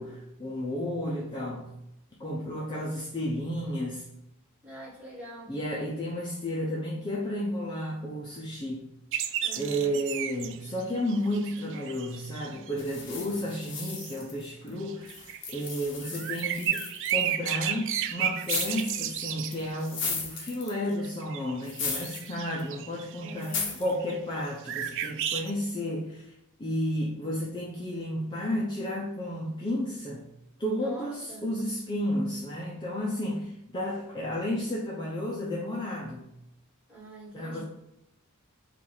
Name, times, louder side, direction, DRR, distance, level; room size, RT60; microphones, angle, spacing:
voice 1, 0.0-1.7 2.2-4.1 5.5-8.9 9.2-9.3 9.6-16.8 17.1-26.3 26.6-30.3 30.6-36.3 37.3-37.6, equal, 20° left, -5 dB, 0.6 m, -32 dB
voice 2, 4.6-5.5 9.4-9.9 23.2-23.8 30.8-31.5 36.9-37.6, equal, 5° right, -7 dB, 1.5 m, -44 dB
sound 1, 9.1-12.7 13.5-14.1 14.8-20.0 21.0-24.4 24.7-25.5, right 10 dB, 55° right, 0.3 m, -33 dB
sound 2, 12.8-14.7 15.1-17.2 18.4-19.0 19.5-20.9 21.6-22.3 22.6-22.7 23.4-23.9, left 5 dB, 55° left, 0.9 m, -36 dB
4.6 x 2.5 x 3.9 m, 0.84 s
head